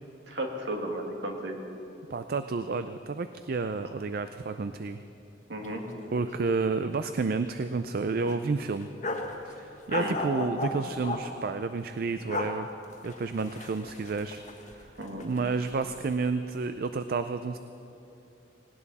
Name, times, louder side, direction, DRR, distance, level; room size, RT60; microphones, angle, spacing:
voice 1, 0.3-1.6 5.5-5.8 10.0-10.1 15.0-15.3, right 1 dB, 70° right, 2 dB, 2.1 m, -34 dB
voice 2, 2.1-5.0 6.1-8.9 9.4-12.7 13.0-15.0 15.2-17.6, right 4 dB, 55° right, 10 dB, 0.4 m, -30 dB
sound 1, 5.6-5.7 6.0-6.1 6.6-7.3 7.6-7.7 8.2-9.3 9.9-11.2 12.1-12.5 12.9-14.9 15.2-16.0, left 2 dB, 40° left, 1.4 m, -35 dB
18.5 x 18.5 x 4.2 m, 3.0 s
head